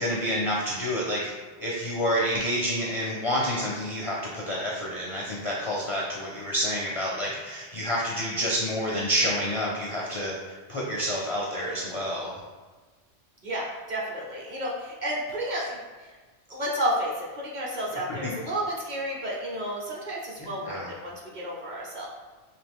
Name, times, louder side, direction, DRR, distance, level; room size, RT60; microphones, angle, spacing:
voice 1, 0.0-1.3 1.6-10.3 10.7-12.4 18.2-18.3 20.6-20.9, equal, 45° left, -4 dB, 0.4 m, -28 dB
voice 2, 13.4-15.8 16.5-22.1, equal, 45° right, -4 dB, 0.8 m, -31 dB
3.6 x 2.9 x 3.5 m, 1.3 s
omnidirectional pair, 1.2 m